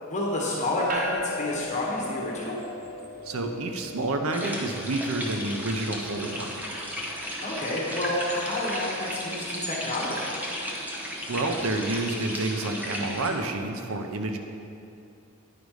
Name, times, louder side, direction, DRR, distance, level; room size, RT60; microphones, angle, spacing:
voice 1, 0.0-2.6 7.4-10.4, left 1 dB, 35° left, -4 dB, 1.2 m, -29 dB
sound 1, 0.9-12.5, equal, 40° right, 0.7 m, -41 dB
voice 2, 3.2-6.5 11.3-14.4, right 2 dB, 80° right, 5 dB, 0.7 m, -29 dB
sound 2, 4.3-13.3, equal, 10° right, 0.9 m, -35 dB
9.8 x 5.2 x 4.8 m, 2.7 s
head